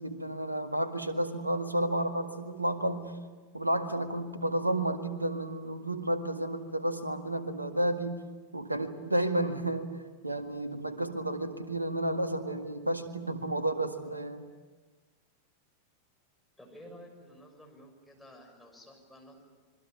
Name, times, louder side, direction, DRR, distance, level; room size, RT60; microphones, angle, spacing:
voice 1, 0.0-3.1 3.5-8.2 8.5-9.9 10.2-14.5, right 1 dB, 85° right, 9 dB, 1.8 m, -31 dB
voice 2, 16.6-19.4, equal, 5° left, 1 dB, 6.5 m, -52 dB
26.5 x 22.5 x 9.4 m, 1.4 s
figure-of-eight pair, 90°, 0 cm